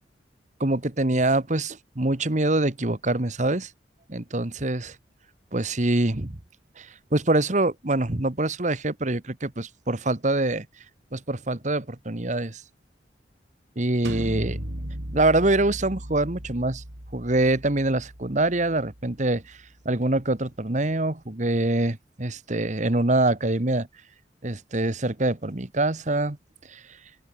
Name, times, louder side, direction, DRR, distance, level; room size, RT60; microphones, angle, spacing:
voice 1, 0.6-3.7 4.1-4.9 5.5-6.4 6.8-10.7 11.1-12.6 13.7-14.6 15.1-16.8 17.1-19.6 19.8-23.9 24.4-26.4 26.7-26.8, right 2 dB, 40° right, 1.5 m, -25 dB
sound 1, 14.0-19.7, equal, 75° right, 4.7 m, -37 dB
open air
head